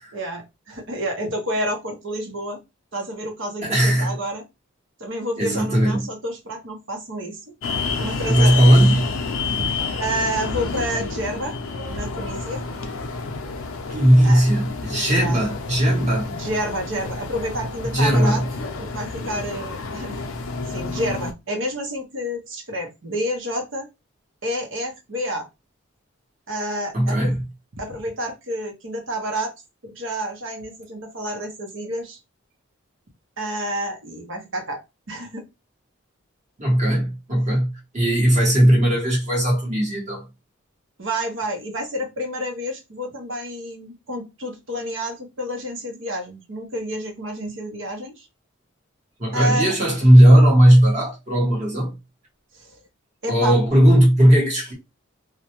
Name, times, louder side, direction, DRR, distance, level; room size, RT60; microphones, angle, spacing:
voice 1, 0.1-2.6 2.9-4.4 5.0-7.4 8.0-8.8 9.6-11.5 11.9-12.6 14.2-14.4 15.1-15.4 16.3-18.4 18.8-20.2 20.7-23.9 24.4-25.5 26.5-27.3 27.8-29.5 29.8-32.2 33.4-34.8 35.1-35.4 41.0-48.3 49.3-49.8 52.5-52.7 53.2-53.5, equal, 65° right, 0.8 m, -29 dB
voice 2, 3.6-4.2 5.4-6.1 8.3-9.0 13.9-16.3 17.9-18.4 26.9-27.4 36.6-40.2 49.2-51.9 53.3-54.7, equal, 35° right, 1.2 m, -17 dB
sound 1, 7.6-21.3, left 4 dB, 85° left, 0.5 m, -29 dB
2.5 x 2.1 x 2.9 m
head